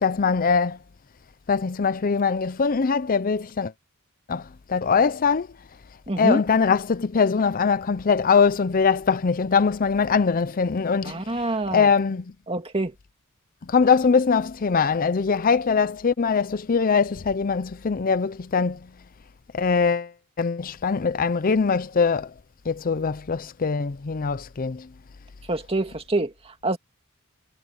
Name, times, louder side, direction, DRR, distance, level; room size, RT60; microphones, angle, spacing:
voice 1, 0.0-0.8 1.5-3.7 4.3-5.5 6.2-11.2 11.7-12.2 13.7-18.8 19.5-20.1 20.4-22.3 22.7-24.9, left 5 dB, 40° left, 0.5 m, -22 dB
voice 2, 6.1-6.4 11.0-11.9 12.5-12.9 25.5-26.8, right 2 dB, 25° right, 2.1 m, -26 dB
head